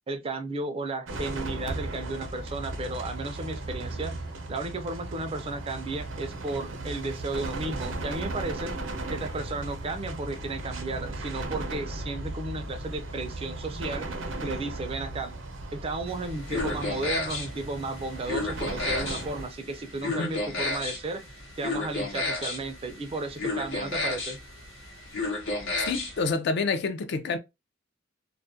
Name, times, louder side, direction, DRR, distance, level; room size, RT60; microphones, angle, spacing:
voice 1, 0.1-4.2 4.5-8.8 9.1-14.1 14.4-15.3 15.7-21.2 21.6-24.4, right 2 dB, 30° right, 0.4 m, -34 dB
sound 1, 1.1-19.5, right 2 dB, 70° right, 0.6 m, -36 dB
sound 2, 16.1-26.3, left 2 dB, 85° left, 0.9 m, -33 dB
voice 2, 25.8-27.4, left 4 dB, 60° left, 0.4 m, -28 dB
2.3 x 2.1 x 2.5 m
head